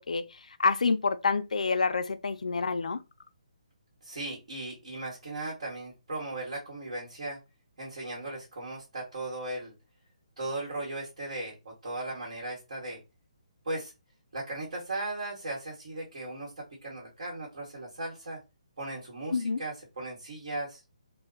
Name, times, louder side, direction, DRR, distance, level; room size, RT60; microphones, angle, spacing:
voice 1, 0.0-3.0 19.3-19.6, left 4 dB, 85° left, 0.5 m, -28 dB
voice 2, 4.0-7.4 7.8-9.7 10.4-13.0 13.6-13.9 14.3-18.4 18.8-20.8, right 2 dB, 55° right, 1.7 m, -37 dB
3.3 x 2.3 x 3.7 m
hypercardioid pair, 175°, 4 cm